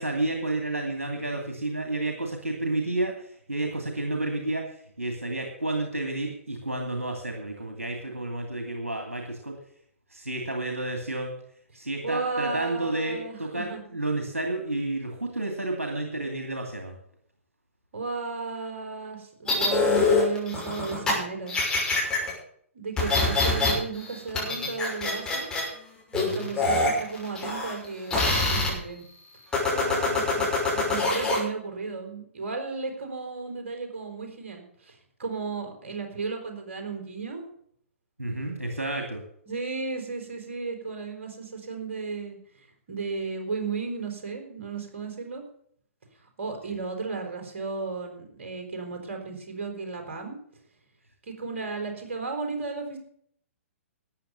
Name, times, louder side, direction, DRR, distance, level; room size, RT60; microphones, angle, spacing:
voice 1, 0.0-9.6 10.1-11.3 11.7-17.0 26.1-26.5 29.9-30.2 38.2-39.2, right 2 dB, 80° right, 2 dB, 2.4 m, -31 dB
voice 2, 12.0-13.8 17.9-21.6 22.7-25.5 26.1-29.0 29.7-30.4 30.7-37.4 39.5-42.4 42.9-45.4 46.4-50.4 51.3-53.0, right 4 dB, 55° right, 3 dB, 4.6 m, -34 dB
sound 1, 19.5-21.1 21.5-22.3 23.0-23.7 24.0-25.7 26.1-27.9 28.1-28.7 29.5-31.4, left 3 dB, 10° left, 6.2 m, -24 dB
13.5 x 9.3 x 6.9 m, 0.64 s
figure-of-eight pair, 115°, 7 cm